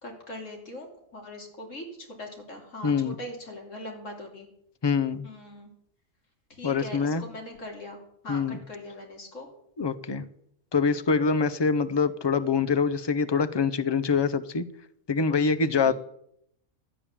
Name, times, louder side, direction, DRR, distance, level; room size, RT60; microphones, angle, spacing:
voice 1, 0.0-4.5 5.2-5.7 6.6-9.5 15.7-15.9, left 1 dB, 80° left, 1 dB, 3.1 m, -41 dB
voice 2, 2.8-3.2 4.8-5.3 6.6-7.2 8.3-8.6 9.8-10.3 10.7-14.6 15.1-15.9, left 5 dB, 35° left, 12 dB, 0.4 m, -25 dB
12.5 x 8.6 x 7.1 m, 0.74 s
omnidirectional pair, 1.3 m